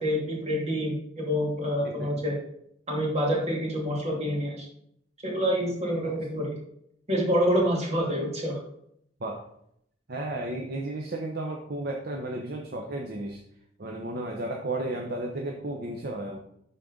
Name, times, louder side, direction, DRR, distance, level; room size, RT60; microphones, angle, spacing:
voice 1, 0.0-2.4 2.9-4.7 5.2-6.6 7.1-8.6, equal, 35° right, -2 dB, 2.4 m, -27 dB
voice 2, 10.1-13.4 13.8-16.4, right 2 dB, 55° right, 1 dB, 0.9 m, -33 dB
11.5 x 4.2 x 3.8 m, 0.73 s
head